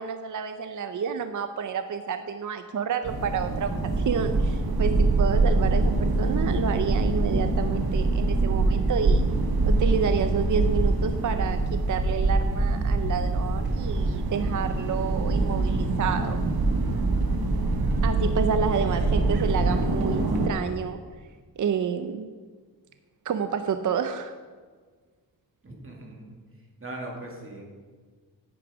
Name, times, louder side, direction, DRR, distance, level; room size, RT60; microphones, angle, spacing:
voice 1, 0.0-9.2 9.7-16.4 18.0-21.0 21.6-22.3 23.3-24.3, right 7 dB, 55° right, 9 dB, 0.5 m, -29 dB
sound 1, 3.0-20.5, right 2 dB, 80° right, 1.1 m, -24 dB
voice 2, 18.6-19.5 25.6-26.4 26.8-27.7, right 1 dB, 35° right, -1 dB, 2.2 m, -40 dB
9.8 x 9.7 x 4.9 m, 1.5 s
wide cardioid pair, 160°, 36 cm